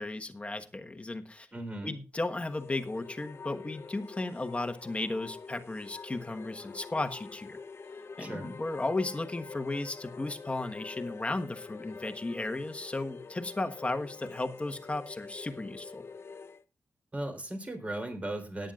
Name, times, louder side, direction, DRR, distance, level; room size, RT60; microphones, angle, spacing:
voice 1, 0.0-1.5 1.8-7.6 8.2-16.0, left 2 dB, 25° left, 7 dB, 1.3 m, -35 dB
voice 2, 1.5-2.0 8.2-8.5 17.1-18.7, right 1 dB, 25° right, 5 dB, 3.6 m, -37 dB
sound 1, 2.4-16.6, left 4 dB, 50° left, 0.8 m, -46 dB
18.0 x 10.0 x 2.5 m, 0.30 s
wide cardioid pair, 100°, 5 cm